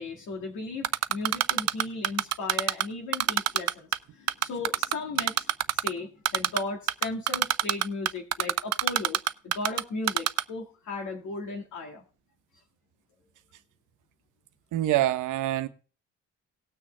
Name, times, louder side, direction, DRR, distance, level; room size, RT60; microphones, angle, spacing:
voice 1, 0.0-12.0, left 3 dB, 75° left, 2.1 m, -36 dB
Typing, 0.8-2.8 3.1-4.0 4.3-5.9 6.2-6.6 6.9-9.8 10.1-10.4, right 13 dB, 60° right, 0.6 m, -24 dB
voice 2, 14.7-15.7, right 14 dB, 85° right, 1.0 m, -25 dB
18.5 x 6.3 x 3.3 m
cardioid pair, 90°, 30 cm